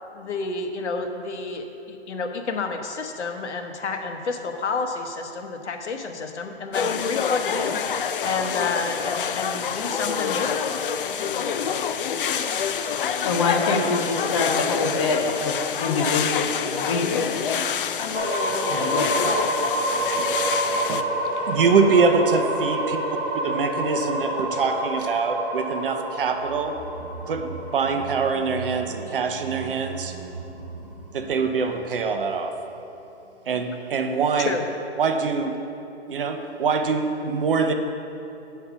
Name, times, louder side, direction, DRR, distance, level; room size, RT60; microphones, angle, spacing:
voice 1, 0.1-10.7 34.4-34.6, left 4 dB, 80° left, 5 dB, 1.1 m, -30 dB
sound 1, 6.7-21.0, left 7 dB, 50° left, 0.4 m, -27 dB
voice 2, 13.2-15.5 15.8-17.3 18.7-19.3, left 3 dB, 25° left, 1 dB, 0.8 m, -25 dB
sound 2, 18.1-29.9, right 1 dB, 10° right, 1.0 m, -28 dB
voice 3, 21.5-23.0 23.4-26.8 27.3-30.1 31.1-32.6 33.5-34.5 35.0-35.5 36.1-37.7, right 5 dB, 50° right, 6 dB, 0.7 m, -24 dB
sound 3, 26.2-32.7 32.9-33.0, right 5 dB, 85° right, 1.3 m, -40 dB
8.5 x 5.6 x 6.0 m, 2.9 s
hypercardioid pair, 170°, 34 cm